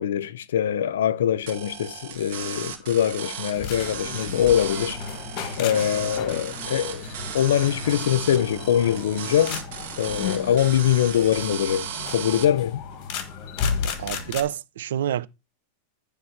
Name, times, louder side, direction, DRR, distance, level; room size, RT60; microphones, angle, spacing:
voice 1, 0.0-5.0 5.6-7.0 7.3-9.6 10.0-12.8, left 10 dB, 90° left, 0.5 m, -23 dB
sound 1, 1.2-14.5, right 5 dB, 25° right, 2.1 m, -49 dB
sound 2, 1.5-12.5, right 8 dB, 55° right, 1.6 m, -36 dB
sound 3, 3.5-14.4, left 6 dB, 40° left, 1.2 m, -34 dB
voice 2, 13.8-15.3, right 11 dB, 80° right, 0.4 m, -28 dB
9.3 x 3.4 x 5.7 m
supercardioid pair, 155°, 0 cm